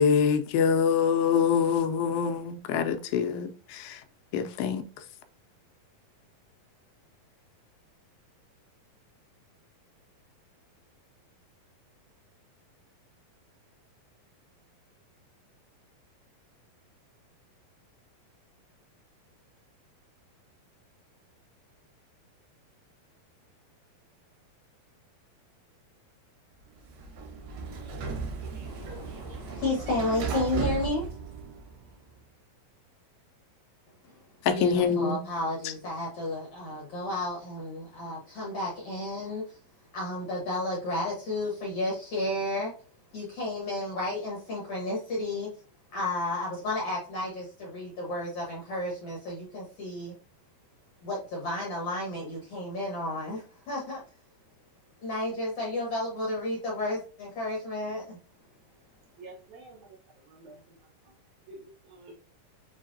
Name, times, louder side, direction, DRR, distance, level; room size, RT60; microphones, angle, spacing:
voice 1, 0.0-4.0 4.3-4.8 34.4-35.2, left 7 dB, 85° left, 2.3 m, -25 dB
Sliding door, 26.8-32.0, right 5 dB, 85° right, 2.9 m, -35 dB
voice 2, 28.6-31.1 34.0-34.2 34.5-39.6 39.9-42.7 43.1-45.5 45.9-50.1 51.0-54.0 55.0-58.2, left 1 dB, 65° left, 1.5 m, -32 dB
voice 3, 59.2-61.1 61.5-62.1, right 2 dB, 70° right, 2.2 m, -50 dB
6.4 x 2.9 x 2.6 m
omnidirectional pair, 4.1 m